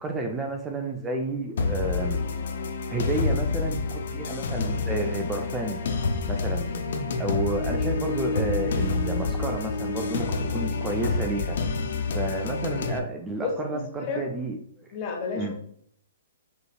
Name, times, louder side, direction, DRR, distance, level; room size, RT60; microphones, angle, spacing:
voice 1, 0.0-2.2 2.9-5.8 6.3-6.7 7.2-11.6 12.1-14.9 15.3-15.5, right 2 dB, 15° right, 3 dB, 0.5 m, -31 dB
sound 1, 1.6-13.0, left 4 dB, 60° left, 0.6 m, -28 dB
voice 2, 13.4-14.2 14.9-15.5, left 4 dB, 35° left, 0 dB, 1.3 m, -31 dB
4.9 x 3.2 x 2.3 m, 0.63 s
figure-of-eight pair, 125°, 0 cm